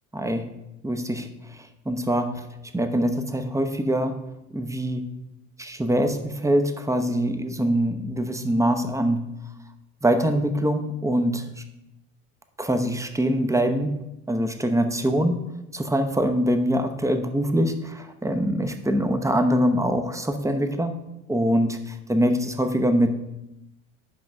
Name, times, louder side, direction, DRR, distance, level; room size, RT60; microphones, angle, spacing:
voice 1, 0.1-0.5 0.8-1.3 1.9-2.4 2.7-4.2 4.5-5.1 5.6-9.3 10.0-11.4 12.6-15.4 15.7-20.9 21.3-23.1, equal, 10° right, 7 dB, 0.9 m, -23 dB
5.6 x 5.2 x 6.0 m, 0.89 s
hypercardioid pair, 60°, 41 cm